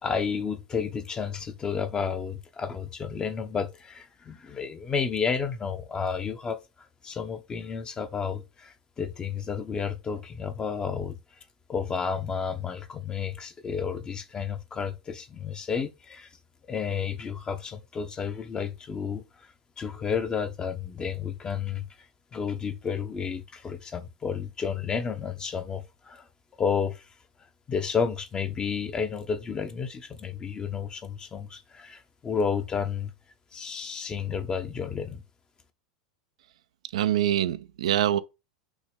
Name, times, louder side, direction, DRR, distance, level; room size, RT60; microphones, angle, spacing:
voice 1, 0.0-6.6 7.0-11.2 11.7-16.3 16.7-19.5 19.8-21.9 22.3-26.3 26.6-27.0 27.7-33.1 33.5-35.2, left 6 dB, 25° left, 1.0 m, -31 dB
voice 2, 36.9-38.2, right 11 dB, 65° right, 0.5 m, -24 dB
6.2 x 3.0 x 5.2 m
figure-of-eight pair, 90°, 4 cm